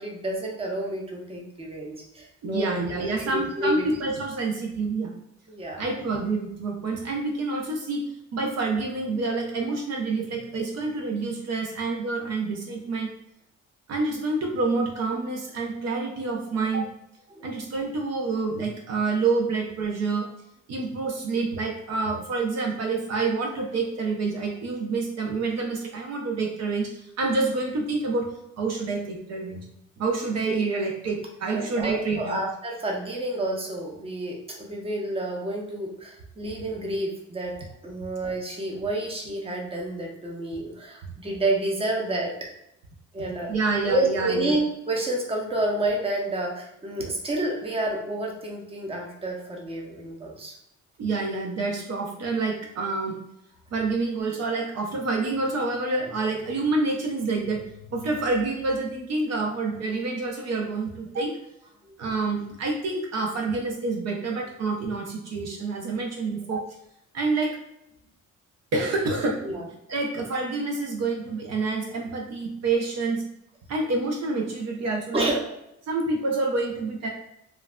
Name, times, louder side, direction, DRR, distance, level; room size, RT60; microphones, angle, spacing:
voice 1, 0.0-2.8 3.1-3.9 5.5-5.8 17.3-17.5 31.5-37.5 37.8-42.3 43.1-43.5 43.9-50.5 69.4-69.6 75.1-75.4, right 2 dB, 20° right, 0 dB, 0.7 m, -29 dB
voice 2, 2.4-5.1 5.8-13.1 13.9-16.9 17.4-20.3 20.7-28.3 28.6-29.6 30.0-32.5 43.5-44.6 51.0-53.2 53.7-57.6 57.9-61.3 62.0-66.6 67.1-67.6 68.7-69.4 69.9-73.2 73.7-75.3 75.9-77.1, right 3 dB, 60° right, 1 dB, 0.6 m, -27 dB
3.1 x 2.4 x 2.2 m, 0.81 s
cardioid pair, 90°, 30 cm